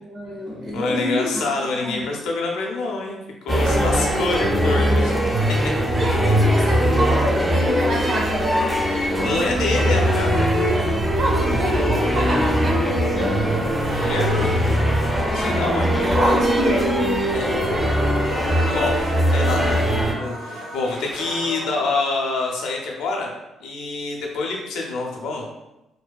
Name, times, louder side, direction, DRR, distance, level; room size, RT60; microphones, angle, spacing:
voice 1, 0.1-1.3 1.8-2.0 5.9-8.7 9.1-9.3 9.8-9.9 11.2-12.8 16.0-17.0, equal, 45° right, -3 dB, 0.9 m, -26 dB
voice 2, 0.7-5.1 5.5-5.6 9.0-10.4 13.9-14.5 15.3-16.3 17.3-17.5 18.2-19.0 19.3-23.3 23.6-25.5, left 3 dB, 85° left, 0 dB, 0.5 m, -26 dB
sound 1, 3.5-20.1, equal, 5° right, 0.4 m, -21 dB
sound 2, 13.1-21.9, right 1 dB, 90° right, 0.6 m, -35 dB
2.6 x 2.2 x 2.2 m, 0.94 s
cardioid pair, 90°, 0 cm